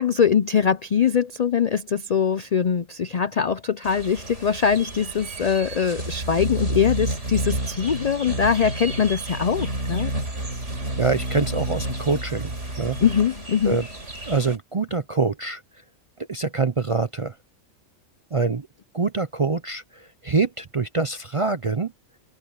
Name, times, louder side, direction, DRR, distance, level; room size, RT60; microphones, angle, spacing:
voice 1, 0.0-10.1 13.0-13.8, left 7 dB, 60° left, 0.4 m, -22 dB
sound 1, 3.8-14.6, right 1 dB, 65° right, 5.3 m, -30 dB
voice 2, 11.0-13.0 13.7-13.9 14.3-15.6 16.3-17.3 18.3-18.7 18.9-21.9, right 4 dB, 40° right, 0.5 m, -25 dB
omnidirectional pair, 1.3 m